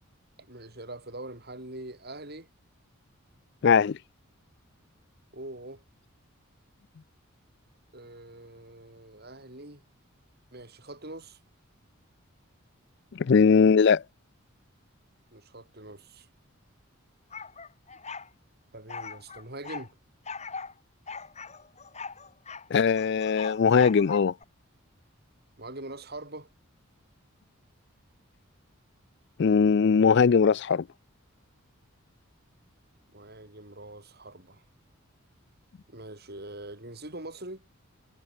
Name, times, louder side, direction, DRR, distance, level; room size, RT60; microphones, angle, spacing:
voice 1, 0.5-2.5 5.3-5.8 7.9-9.8 10.5-11.4 15.3-16.3 18.7-19.9 25.6-26.5 33.1-34.6 35.9-37.7, right 2 dB, 50° right, 6.0 m, -43 dB
voice 2, 3.6-4.0 13.1-14.0 22.7-24.3 29.4-30.9, left 6 dB, 55° left, 0.4 m, -20 dB
sound 1, 17.3-18.3 18.9-19.9 20.3-20.7 21.1-22.7 22.9-24.4, left 5 dB, 30° left, 5.9 m, -40 dB
head